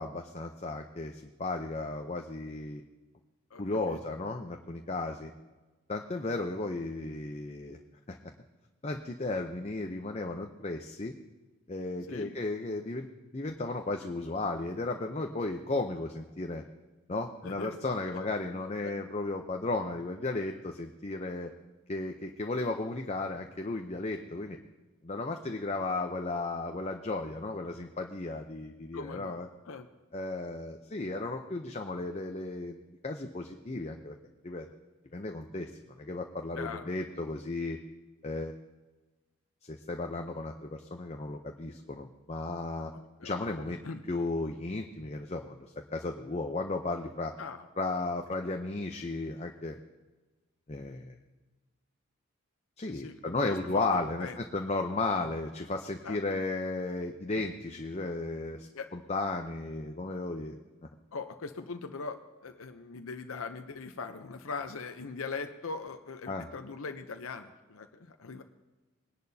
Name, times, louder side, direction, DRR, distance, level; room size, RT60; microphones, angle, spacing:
voice 1, 0.0-2.8 3.6-5.3 5.9-7.8 8.1-8.2 8.8-11.1 11.7-13.1 13.3-16.6 17.1-21.5 21.9-24.6 25.0-29.5 30.1-32.8 33.0-34.1 34.4-34.7 35.1-35.7 36.0-37.8 38.2-38.5 39.6-42.9 43.2-43.8 44.1-45.6 45.9-47.3 47.8-49.8 50.7-51.1 52.8-60.6 66.3-66.5, left 2 dB, 30° left, 3 dB, 0.6 m, -34 dB
voice 2, 3.5-4.0 12.1-12.3 17.4-17.8 18.1-18.3 18.8-18.9 28.9-29.4 29.7-29.9 36.5-36.9 42.9-43.3 43.7-44.0 47.4-47.6 52.9-54.4 56.0-56.2 58.7-58.9 61.1-68.4, left 4 dB, 85° left, 7 dB, 0.7 m, -41 dB
21.0 x 11.0 x 2.8 m, 1.2 s
head